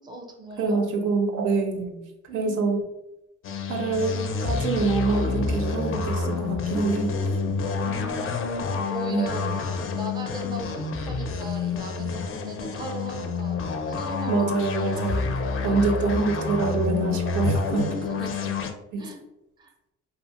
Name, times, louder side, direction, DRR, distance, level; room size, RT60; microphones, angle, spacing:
voice 1, 0.0-0.8 2.3-2.7 7.8-9.6 10.0-14.3 14.7-15.1 15.6-15.9 18.1-18.7 19.0-19.2 19.6-19.7, right 1 dB, 15° right, 3 dB, 0.5 m, -39 dB
voice 2, 0.6-2.0 2.3-2.8 3.7-7.2 9.1-9.5 14.3-17.9 18.9-19.1, right 4 dB, 75° right, 4 dB, 0.6 m, -26 dB
sound 1, 3.4-18.7, left 4 dB, 45° left, 0.4 m, -28 dB
2.4 x 2.4 x 2.8 m, 0.92 s
cardioid pair, 90°, 30 cm